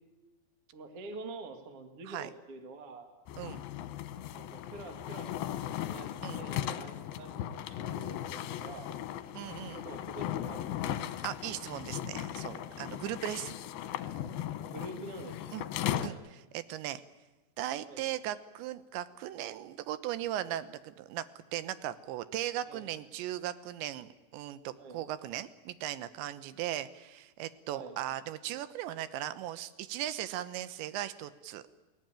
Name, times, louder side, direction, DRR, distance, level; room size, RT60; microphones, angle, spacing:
voice 1, 0.7-3.1 4.3-5.5 5.8-6.1 6.4-8.9 9.7-10.9 11.2-11.3 14.6-15.4 17.8-18.0 22.6-22.8 24.8-25.0 27.7-28.0, right 2 dB, 45° right, 6 dB, 2.1 m, -46 dB
sound 1, 3.3-16.1, left 11 dB, 70° left, 2.6 m, -37 dB
voice 2, 9.3-9.8 11.2-13.6 15.5-15.6 16.0-17.0 17.6-21.2 21.5-31.6, right 12 dB, 85° right, 14 dB, 3.3 m, -38 dB
29.0 x 18.5 x 8.9 m, 1.1 s
omnidirectional pair, 5.0 m